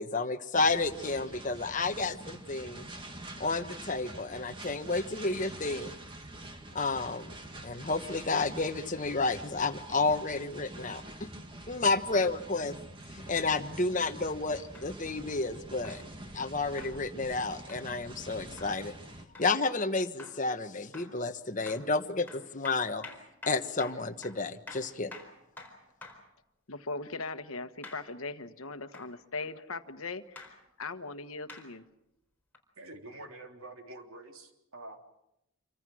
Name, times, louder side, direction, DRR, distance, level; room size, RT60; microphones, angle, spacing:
voice 1, 0.0-2.8 3.4-5.9 6.7-7.4 7.6-11.0 11.7-12.7 13.3-16.0 16.3-18.9 19.4-23.0 23.5-25.1, left 3 dB, 35° left, 9 dB, 1.2 m, -31 dB
sound 1, 0.5-19.3, right 1 dB, 25° right, 2.1 m, -46 dB
sound 2, 14.7-14.9 15.8-16.0 16.8-17.0 17.7-17.9 18.6-18.8 19.3-19.5 20.2-20.4 20.9-21.2 21.7-21.9 22.3-26.3 27.8-28.1 28.9-29.1 30.4-30.5 31.5-31.7 32.5-32.6, left 3 dB, 10° left, 4.3 m, -48 dB
voice 2, 26.7-31.9, left 3 dB, 80° left, 9 dB, 1.3 m, -39 dB
voice 3, 32.8-35.0, right 2 dB, 80° right, 3 dB, 3.5 m, -47 dB
27.5 x 24.5 x 6.3 m, 0.85 s
head